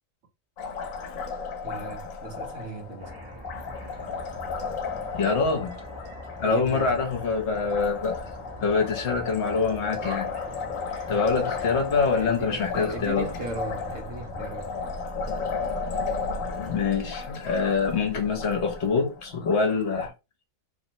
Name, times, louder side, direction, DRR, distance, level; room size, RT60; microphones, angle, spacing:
Liquid, 0.6-20.1, left 5 dB, 90° left, 1.0 m, -34 dB
voice 1, 1.6-3.2 6.4-7.0 10.9-11.7 12.1-14.7, right 2 dB, 75° right, 1.2 m, -37 dB
sound 1, 3.0-16.9, right 1 dB, 25° right, 0.6 m, -43 dB
voice 2, 5.1-5.8 6.4-8.2 8.6-10.3 11.1-13.3 16.7-20.1, left 4 dB, 60° left, 1.1 m, -25 dB
3.0 x 2.1 x 2.7 m
omnidirectional pair, 1.3 m